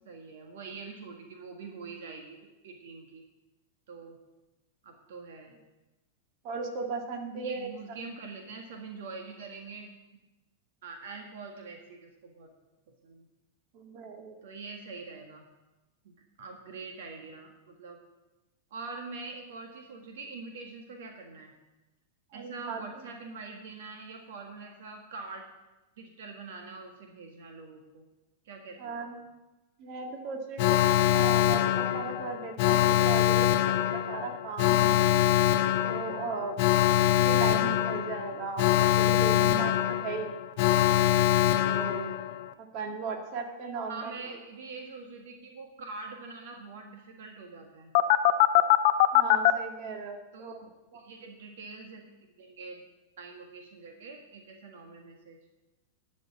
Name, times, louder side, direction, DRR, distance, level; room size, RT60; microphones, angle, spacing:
voice 1, 0.1-2.4 2.6-3.2 3.9-4.2 4.8-5.5 7.4-9.9 10.8-12.5 13.0-13.3 14.4-15.4 16.1-18.0 18.7-21.5 22.3-25.5 26.0-28.0 28.5-29.1 43.9-47.9 50.3-50.6 51.0-52.0 52.4-52.8 53.2-55.4, right 4 dB, 70° right, 3 dB, 1.6 m, -44 dB
voice 2, 6.4-7.7 13.7-14.4 22.3-22.8 28.8-29.3 29.8-35.1 35.8-36.6 37.0-40.3 41.7-42.2 42.6-44.4 49.1-51.0, right 4 dB, 50° right, 4 dB, 1.9 m, -37 dB
Alarm, 30.6-42.5 47.9-49.5, left 13 dB, 55° left, 0.7 m, -23 dB
11.5 x 5.3 x 8.4 m, 1.1 s
hypercardioid pair, 120°, 0 cm